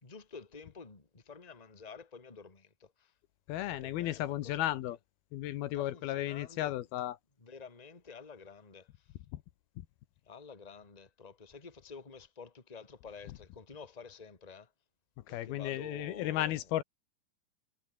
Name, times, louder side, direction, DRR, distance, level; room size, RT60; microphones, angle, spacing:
voice 1, 0.0-3.1 3.7-5.0 5.7-6.9 7.4-9.1 10.3-14.7 15.3-16.8, left 5 dB, 15° left, 2.0 m, -50 dB
voice 2, 3.5-5.0 5.3-7.2 9.3-9.4 15.3-16.8, left 14 dB, 75° left, 2.8 m, -34 dB
omnidirectional pair, 4.6 m